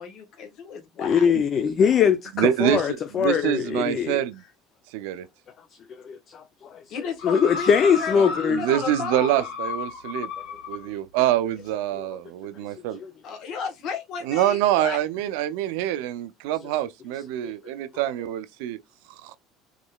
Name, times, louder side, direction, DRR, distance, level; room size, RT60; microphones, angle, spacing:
voice 1, 0.0-1.3 2.6-2.8 3.4-3.5 6.9-9.4 13.2-15.0, left 6 dB, 55° left, 1.2 m, -34 dB
voice 2, 1.0-4.2 5.9-6.9 7.2-8.6 10.9-11.0 11.9-12.2 12.9-13.1 17.4-17.5, left 7 dB, 40° left, 0.4 m, -22 dB
voice 3, 2.4-2.8 3.2-4.4 4.9-5.3 8.2-10.3 10.7-13.0 14.2-18.8 19.2-19.4, right 13 dB, 85° right, 0.4 m, -25 dB
sound 1, 7.2-10.9 11.7-11.8, left 4 dB, 70° left, 1.4 m, -34 dB
3.7 x 3.1 x 2.3 m
cardioid pair, 130°, 0 cm